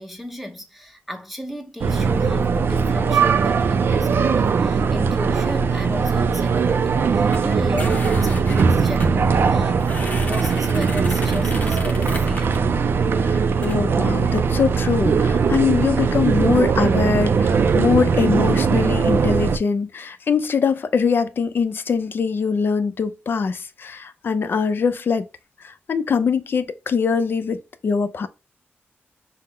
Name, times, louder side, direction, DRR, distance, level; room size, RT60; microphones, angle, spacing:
voice 1, 0.0-9.9 10.3-12.7, left 1 dB, ahead, 0.8 m, -34 dB
sound 1, 1.8-19.6, right 5 dB, 60° right, 0.4 m, -20 dB
plastic scraped on glass, 7.3-7.4 7.8-9.1 9.8-12.6 13.5-13.8, left 2 dB, 35° left, 0.9 m, -34 dB
voice 2, 13.2-25.3 25.6-28.3, left 5 dB, 60° left, 0.5 m, -22 dB
5.5 x 2.1 x 3.6 m
wide cardioid pair, 125°, 4 cm